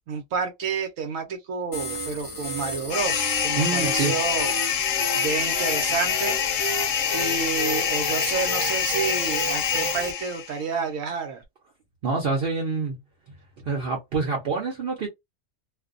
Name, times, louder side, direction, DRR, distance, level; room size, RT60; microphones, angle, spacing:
voice 1, 0.0-4.5 5.1-6.4 7.1-11.4, right 5 dB, 85° right, 1.0 m, -29 dB
sound 1, 1.7-10.1, left 1 dB, 15° left, 1.0 m, -32 dB
sound 2, 2.9-10.6, left 8 dB, 75° left, 0.9 m, -26 dB
voice 2, 3.6-4.1 12.0-13.0 13.7-15.1, right 4 dB, 55° right, 0.8 m, -26 dB
2.5 x 2.2 x 2.4 m
omnidirectional pair, 1.4 m